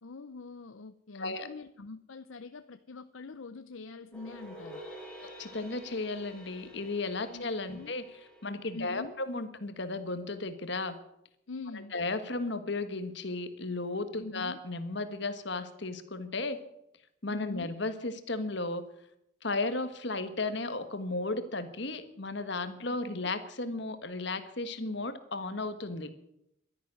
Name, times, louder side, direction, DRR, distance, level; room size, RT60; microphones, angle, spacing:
voice 1, 0.0-4.8 7.3-7.9 8.7-9.2 11.5-11.9 14.2-14.6 17.3-17.7 22.9-23.0 23.2-23.3, left 3 dB, 70° left, 11 dB, 0.7 m, -44 dB
voice 2, 1.1-1.5 5.4-8.0 8.4-11.0 11.7-16.6 17.2-18.8 19.4-26.1, left 2 dB, 55° left, 10 dB, 1.6 m, -34 dB
sound 1, 4.1-9.4, equal, 5° left, 3.0 m, -49 dB
12.5 x 11.0 x 9.9 m, 0.79 s
head